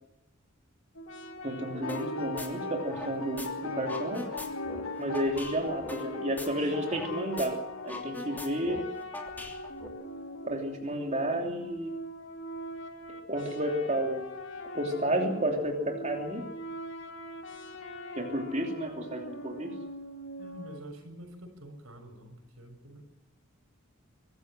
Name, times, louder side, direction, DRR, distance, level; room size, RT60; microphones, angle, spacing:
sound 1, 1.0-6.0 6.5-20.8, equal, 60° left, 2.8 m, -42 dB
voice 1, 1.4-4.3 5.0-8.8 10.4-11.9 13.3-14.3 14.7-16.5 18.1-19.7, right 1 dB, 35° right, 2 dB, 3.1 m, -31 dB
sound 2, 1.8-8.0, left 3 dB, 75° left, 1.3 m, -38 dB
sound 3, 1.9-2.1 2.4-3.5 3.8-7.1 7.4-7.5 7.8-9.9, left 2 dB, 10° left, 3.1 m, -41 dB
voice 2, 20.4-23.0, equal, 85° right, 5 dB, 7.0 m, -47 dB
24.0 x 15.5 x 7.6 m, 0.91 s
head